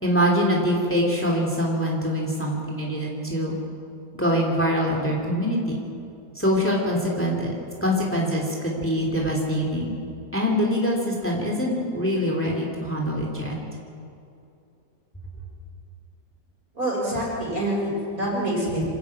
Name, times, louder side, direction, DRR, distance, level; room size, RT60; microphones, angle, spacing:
voice 1, 0.0-3.5 4.1-5.8 6.3-7.5 7.8-9.9 10.3-13.5, equal, 5° left, -1 dB, 3.2 m, -24 dB
voice 2, 16.7-18.8, right 1 dB, 55° right, -5 dB, 6.6 m, -26 dB
26.5 x 12.0 x 8.6 m, 2.6 s
omnidirectional pair, 1.8 m